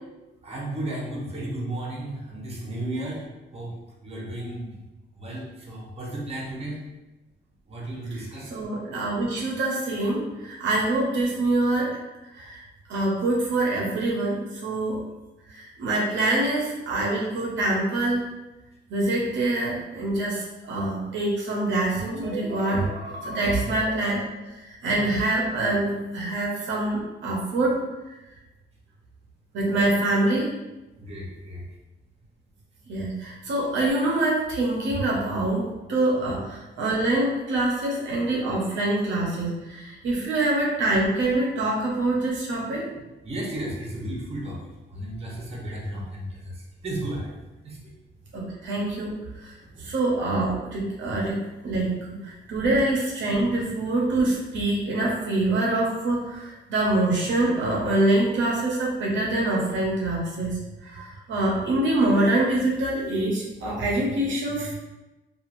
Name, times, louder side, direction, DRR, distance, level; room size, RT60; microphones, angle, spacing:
voice 1, 0.4-3.3 3.5-3.7 4.0-4.7 5.1-6.8 7.7-8.6 23.6-23.7 24.9-25.1 31.0-31.6 36.2-36.4 42.9-43.0 43.2-47.3 47.6-47.8 49.7-49.9, right 1 dB, 30° right, -3 dB, 0.9 m, -34 dB
voice 2, 8.5-12.0 12.3-12.6 12.9-15.0 15.5-18.3 18.9-24.3 24.6-27.8 29.5-30.5 32.9-42.9 48.3-49.5 49.8-51.4 51.6-51.9 52.2-64.7, right 2 dB, 70° right, -3 dB, 0.7 m, -25 dB
2.9 x 2.4 x 2.5 m, 1.1 s
cardioid pair, 90°, 20 cm